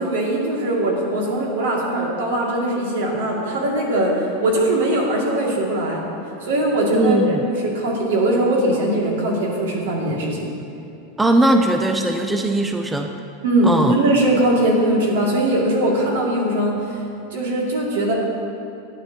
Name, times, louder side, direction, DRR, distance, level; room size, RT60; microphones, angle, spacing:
voice 1, 0.0-6.0 6.4-7.2 7.5-10.4 13.4-16.8 17.3-18.1, right 1 dB, 80° right, -2 dB, 2.3 m, -20 dB
voice 2, 6.9-7.5 11.2-13.1 13.6-13.9, right 2 dB, 5° right, 4 dB, 0.3 m, -19 dB
13.5 x 9.5 x 2.9 m, 2.7 s
supercardioid pair, 180°, 0 cm